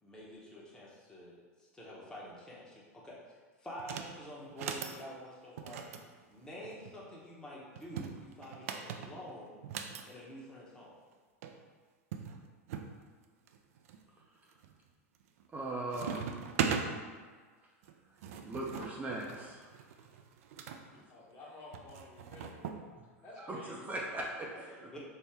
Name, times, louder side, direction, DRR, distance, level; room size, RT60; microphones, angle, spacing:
voice 1, 0.0-5.9 6.3-9.6 10.1-11.0 23.6-23.9 24.8-25.0, left 1 dB, 10° left, -5 dB, 0.9 m, -48 dB
sound 1, 3.8-4.1 4.5-5.0 5.6-7.0 7.8-10.0 11.1-11.2 11.4-11.5 12.1-12.9 13.5-14.0 14.5-14.9 15.2-15.6 15.9-16.9 17.8-20.8 21.7-22.8, right 7 dB, 70° right, 0.4 m, -39 dB
voice 2, 15.5-16.2 18.4-19.7 20.9-21.0 23.4-24.5, right 2 dB, 20° right, -3 dB, 0.5 m, -39 dB
voice 3, 21.1-22.9 23.2-23.8 24.5-24.9, left 2 dB, 40° left, -5 dB, 1.2 m, -52 dB
4.4 x 2.1 x 3.4 m, 1.5 s
hypercardioid pair, 110°, 8 cm